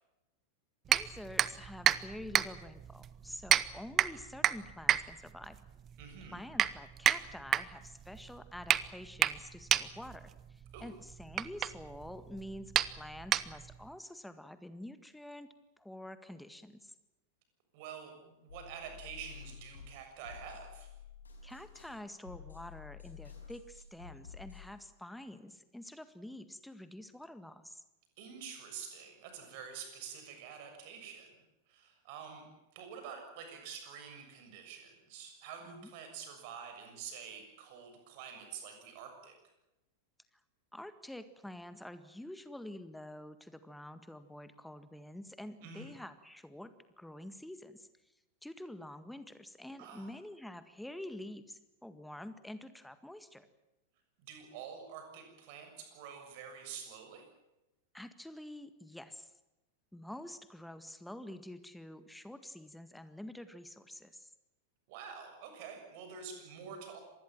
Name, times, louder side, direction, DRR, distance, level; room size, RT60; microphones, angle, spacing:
voice 1, 0.9-5.6 6.3-15.5 15.8-16.9 21.4-27.8 35.6-35.9 40.7-47.9 48.4-53.5 57.9-59.3 59.9-64.3, left 1 dB, 5° left, 12 dB, 1.8 m, -48 dB
sound 1, 0.9-13.9, right 10 dB, 30° right, 0.9 m, -32 dB
voice 2, 6.0-6.4 10.7-10.9 17.7-20.9 28.2-31.4 31.7-32.4 32.7-39.3 45.6-45.9 49.8-50.1 54.2-57.2 64.9-67.0, right 7 dB, 50° right, 5 dB, 7.0 m, -47 dB
sound 2, 18.5-24.7, left 7 dB, 75° left, 5.6 m, -51 dB
26.0 x 20.0 x 7.5 m, 0.97 s
figure-of-eight pair, 90°, 0 cm